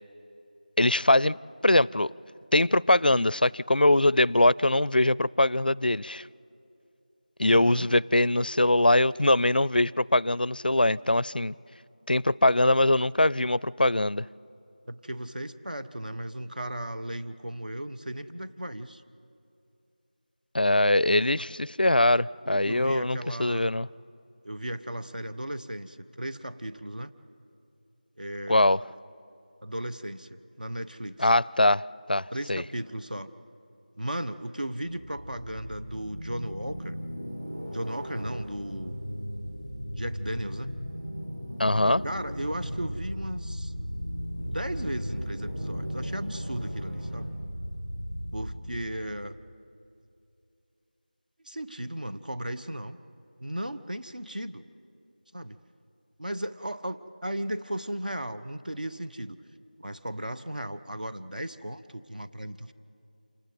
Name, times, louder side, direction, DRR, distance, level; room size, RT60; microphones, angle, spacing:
voice 1, 0.8-1.4 1.6-2.1 2.5-6.2 7.4-11.5 12.1-14.3 20.5-23.9 28.5-28.8 31.2-32.6 41.6-42.0, left 1 dB, 80° left, 23 dB, 0.4 m, -22 dB
voice 2, 7.5-7.9 14.9-19.0 21.4-21.5 22.4-23.8 24.4-27.1 28.2-28.8 29.6-31.3 32.3-33.3 34.0-37.0 37.7-39.0 39.9-40.7 42.0-43.7 44.4-47.3 48.3-49.4 51.4-53.0 53.4-54.6 55.3-55.6 56.2-59.4 59.8-62.7, right 1 dB, 65° right, 9 dB, 1.2 m, -36 dB
sound 1, 34.8-48.5, equal, 80° right, 7.1 m, -36 dB
27.5 x 18.5 x 8.2 m, 2.7 s
figure-of-eight pair, 180°, 5 cm